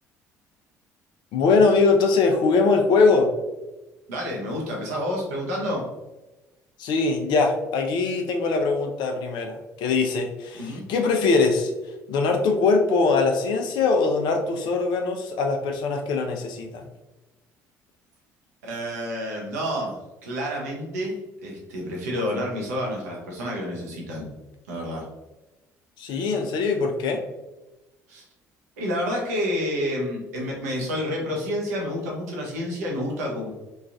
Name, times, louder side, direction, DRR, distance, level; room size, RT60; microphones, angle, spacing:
voice 1, 1.3-3.3 6.8-11.7 12.1-16.8 26.0-27.2, left 4 dB, 60° left, 4 dB, 0.5 m, -22 dB
voice 2, 4.1-5.9 10.6-10.9 18.6-24.3 24.7-25.1 28.1-28.2 28.8-33.5, equal, 80° right, -2 dB, 0.6 m, -29 dB
3.0 x 2.3 x 2.4 m, 1.0 s
hypercardioid pair, 55°, 8 cm